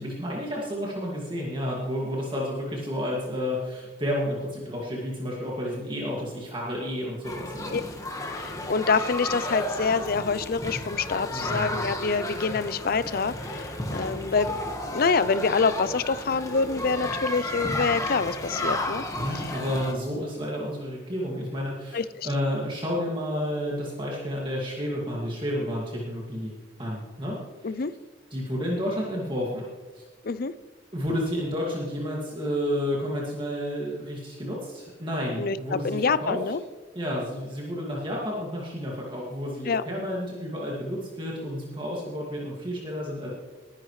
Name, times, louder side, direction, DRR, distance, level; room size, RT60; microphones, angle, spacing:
voice 1, 0.0-7.7 11.3-11.8 19.1-26.5 26.8-27.8 28.3-29.6 29.9-30.0 30.9-36.4 36.9-43.3, equal, 25° right, -4 dB, 2.2 m, -31 dB
sound 1, 7.2-19.9, left 1 dB, 20° left, 1.5 m, -33 dB
voice 2, 8.4-14.5 14.9-19.0 19.3-19.4 21.9-22.3 27.6-27.9 30.2-30.5 35.4-35.6 35.8-36.6 39.6-39.8, left 4 dB, 55° left, 16 dB, 0.5 m, -26 dB
20.5 x 10.5 x 3.2 m, 1.4 s
head